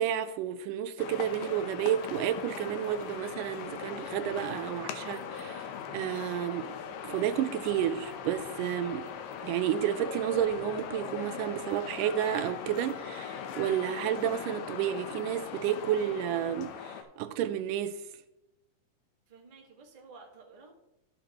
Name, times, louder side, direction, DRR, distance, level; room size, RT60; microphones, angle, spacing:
voice 1, 0.0-6.7 7.0-9.1 9.4-18.0, right 10 dB, 85° right, 2.2 m, -31 dB
sound 1, 1.0-17.0, left 7 dB, 90° left, 2.4 m, -40 dB
voice 2, 19.3-20.7, right 4 dB, 40° right, 0.5 m, -53 dB
13.0 x 6.6 x 2.9 m
omnidirectional pair, 3.7 m